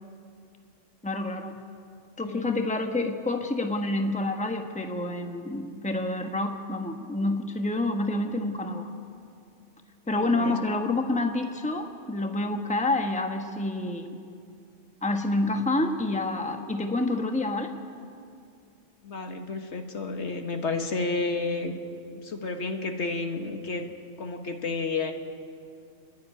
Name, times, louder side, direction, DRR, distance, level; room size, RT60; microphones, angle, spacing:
voice 1, 1.0-1.6 2.2-8.9 10.1-14.2 15.0-17.7, left 2 dB, 5° left, 5 dB, 1.1 m, -28 dB
voice 2, 2.2-2.7 10.1-10.6 19.0-21.8 22.2-23.9 24.2-25.1, left 3 dB, 70° left, 5 dB, 1.7 m, -31 dB
28.0 x 10.5 x 9.9 m, 2.5 s
omnidirectional pair, 1.2 m